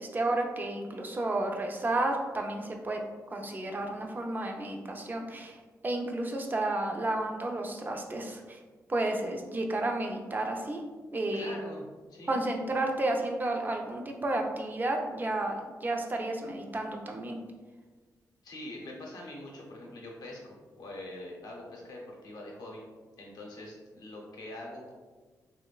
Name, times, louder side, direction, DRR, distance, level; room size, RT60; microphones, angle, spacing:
voice 1, 0.0-3.0 3.3-5.6 5.8-8.6 8.9-10.8 11.1-11.6 12.3-17.4, right 2 dB, 30° right, 2 dB, 0.4 m, -32 dB
voice 2, 11.3-12.4 18.4-22.8 23.2-24.9, left 1 dB, 75° left, -1 dB, 0.6 m, -44 dB
3.0 x 2.0 x 2.3 m, 1.4 s
cardioid pair, 60°, 7 cm